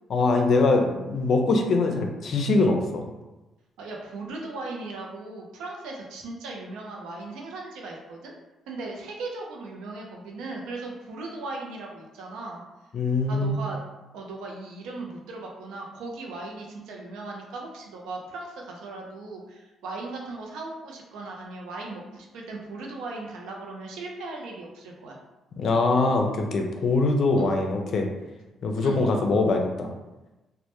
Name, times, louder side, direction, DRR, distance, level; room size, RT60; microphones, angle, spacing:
voice 1, 0.1-3.0 12.9-13.6 25.6-28.1 28.6-29.9, left 3 dB, 65° left, 3 dB, 0.4 m, -23 dB
voice 2, 3.8-8.3 8.7-12.6 13.3-13.8 14.1-25.2 27.4-27.6 28.8-29.0, right 3 dB, 85° right, 0 dB, 0.4 m, -37 dB
2.1 x 2.1 x 2.9 m, 1.1 s
cardioid pair, 75°, 0 cm